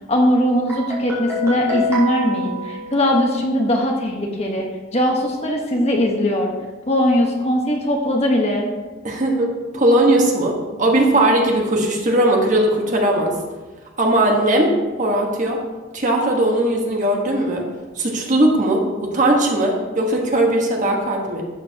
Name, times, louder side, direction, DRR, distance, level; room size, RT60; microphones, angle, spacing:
voice 1, 0.1-4.7 4.9-6.5 6.9-8.7, left 1 dB, 30° left, 0 dB, 1.2 m, -20 dB
Guitar, 0.7-3.5, equal, 15° right, 3.1 m, -26 dB
voice 2, 9.0-13.4 14.0-14.7 15.0-15.6 15.9-17.6 17.9-21.4, right 1 dB, 40° right, 0 dB, 1.4 m, -18 dB
12.0 x 7.9 x 2.9 m, 1.3 s
head